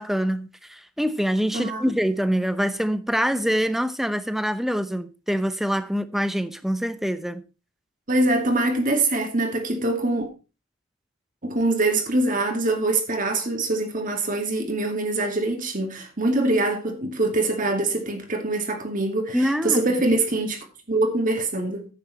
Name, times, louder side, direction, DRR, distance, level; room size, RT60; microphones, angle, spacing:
voice 1, 0.0-7.4 19.3-19.8, equal, ahead, 0.7 m, -25 dB
voice 2, 1.5-1.9 8.1-10.3 11.4-21.9, right 2 dB, 40° right, 2.3 m, -24 dB
10.0 x 8.7 x 4.2 m
head